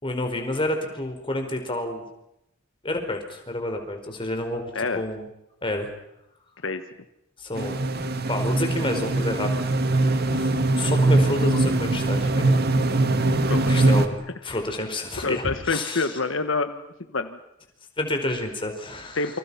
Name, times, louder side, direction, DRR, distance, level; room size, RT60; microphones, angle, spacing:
voice 1, 0.0-2.0 2.8-5.2 5.6-5.9 7.4-9.5 10.2-12.6 13.7-16.1 18.0-19.2, left 1 dB, 25° left, 5 dB, 4.9 m, -29 dB
sound 1, 7.6-14.1, right 2 dB, 50° right, 1.9 m, -22 dB
voice 2, 13.4-13.9 15.2-16.8 17.1-17.4 19.1-19.4, left 3 dB, 75° left, 8 dB, 1.4 m, -27 dB
28.5 x 26.5 x 5.8 m, 0.84 s
head